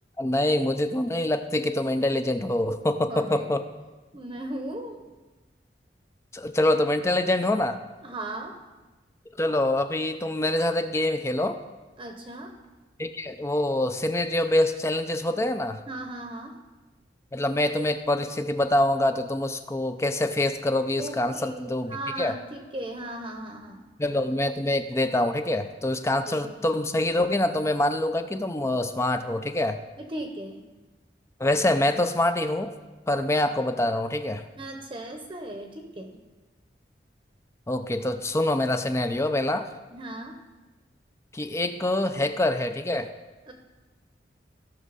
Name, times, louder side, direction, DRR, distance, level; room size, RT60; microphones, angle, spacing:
voice 1, 0.2-3.6 6.3-7.8 9.4-11.6 13.0-15.8 17.3-22.3 24.0-29.8 31.4-32.7 33.1-34.4 37.7-39.7 41.3-43.1, left 1 dB, 15° left, 8 dB, 0.5 m, -25 dB
voice 2, 3.1-3.5 4.1-5.1 8.0-8.6 12.0-12.5 15.9-16.5 21.0-23.8 26.2-26.5 30.0-30.6 34.6-36.2 39.9-40.4 43.5-43.6, right 1 dB, 30° right, 4 dB, 0.8 m, -37 dB
16.0 x 6.4 x 4.1 m, 1.2 s
head